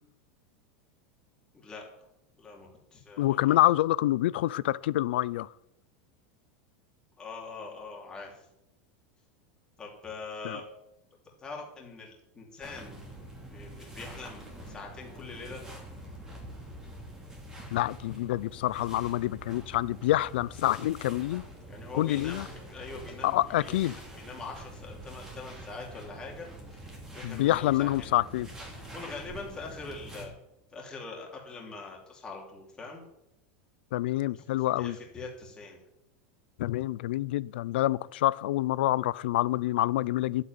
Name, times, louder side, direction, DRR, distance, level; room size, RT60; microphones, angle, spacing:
voice 1, 2.4-3.6 7.2-8.4 9.8-10.6 11.4-13.0 13.5-15.6 21.7-26.5 27.1-28.1 28.9-30.3 30.7-33.0 34.3-34.4 34.8-35.8, left 4 dB, 15° left, 3.2 m, -43 dB
voice 2, 3.2-5.5 10.4-10.6 17.7-21.4 21.9-22.5 23.2-24.0 27.2-28.5 33.9-35.0 36.6-40.4, left 15 dB, 75° left, 0.5 m, -27 dB
sound 1, 12.6-30.2, right 1 dB, 10° right, 2.7 m, -46 dB
12.5 x 8.2 x 9.4 m
supercardioid pair, 175°, 6 cm